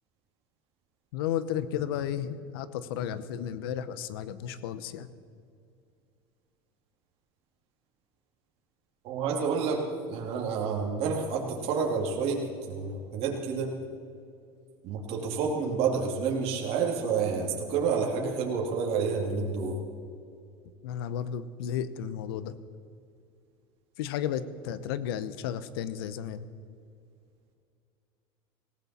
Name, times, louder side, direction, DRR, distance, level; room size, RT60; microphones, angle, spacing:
voice 1, 1.1-5.1 20.8-22.5 24.0-26.4, left 9 dB, 80° left, 15 dB, 0.9 m, -33 dB
voice 2, 9.0-13.7 14.8-19.8, right 5 dB, 55° right, -1 dB, 2.6 m, -29 dB
18.5 x 16.0 x 4.4 m, 2.4 s
supercardioid pair, 110°, 12 cm